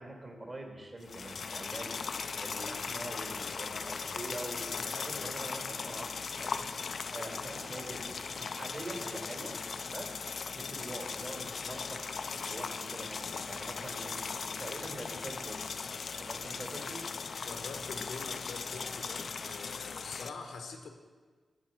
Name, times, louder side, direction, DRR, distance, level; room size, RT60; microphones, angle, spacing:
voice 1, 0.0-2.0 2.4-6.6 7.1-9.6 9.9-12.1 12.5-15.6 16.2-17.1, right 1 dB, 40° right, 2 dB, 1.8 m, -44 dB
sound 1, 1.0-20.3, left 5 dB, 65° left, 0.3 m, -38 dB
voice 2, 7.0-7.6 17.3-20.9, left 4 dB, 90° left, 4 dB, 0.9 m, -45 dB
8.8 x 4.7 x 6.3 m, 1.5 s
cardioid pair, 55°, 0 cm